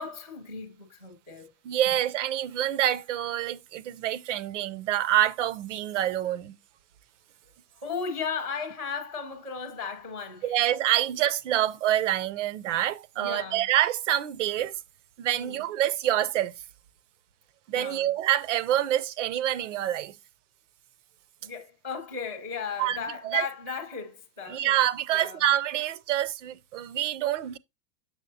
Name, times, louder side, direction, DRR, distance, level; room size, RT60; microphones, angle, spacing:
voice 1, 0.0-1.5 1.9-2.0 7.7-10.6 13.2-13.7 15.3-15.7 17.7-18.1 21.4-24.8 25.1-25.4, left 5 dB, 10° left, 0.3 m, -36 dB
voice 2, 1.6-6.6 10.4-14.7 15.2-16.5 17.7-20.1 22.8-23.0 23.2-23.5 24.5-27.6, right 12 dB, 50° right, 0.5 m, -26 dB
7.2 x 7.1 x 2.7 m
supercardioid pair, 175°, 48 cm